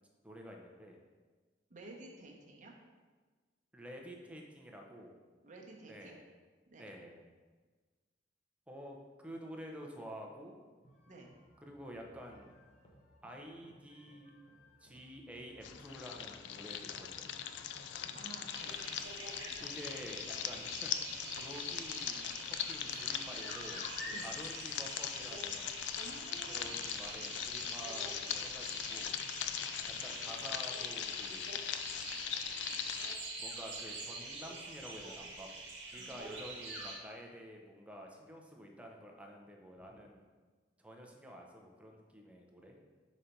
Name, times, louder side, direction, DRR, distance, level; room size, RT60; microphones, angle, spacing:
voice 1, 0.2-1.0 3.7-5.1 5.9-6.2 6.8-7.2 8.7-9.0 9.2-10.6 11.6-12.5 13.2-14.3 14.8-17.3 19.6-21.1 21.4-22.2 22.7-25.7 26.5-29.2 30.0-31.5 33.4-35.5 35.9-40.2 40.8-42.8, equal, 5° right, 0 dB, 0.7 m, -49 dB
voice 2, 1.7-2.7 5.4-6.2 6.7-6.8 11.1-11.3 18.1-18.8 24.1-24.3 26.0-26.8 36.0-36.3, right 2 dB, 45° right, -1 dB, 0.9 m, -52 dB
sound 1, 10.8-30.2, equal, 45° left, 1.0 m, -63 dB
sound 2, 15.6-33.2, left 9 dB, 80° left, 0.3 m, -40 dB
sound 3, 18.5-37.0, right 2 dB, 70° right, 1.2 m, -46 dB
5.2 x 4.1 x 4.5 m, 1.4 s
head